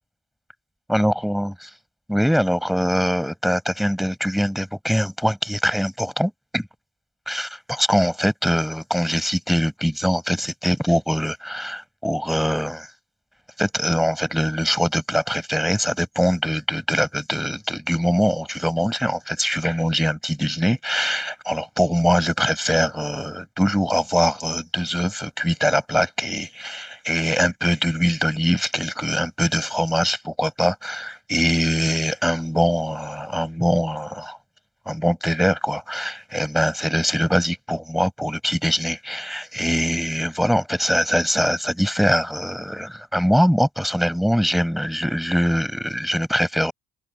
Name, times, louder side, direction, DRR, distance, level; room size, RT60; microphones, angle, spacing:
voice 1, 0.9-1.7 2.1-6.7 7.3-12.9 13.6-34.4 34.8-46.7, equal, ahead, 7.0 m, -22 dB
open air
hypercardioid pair, 45°, 43 cm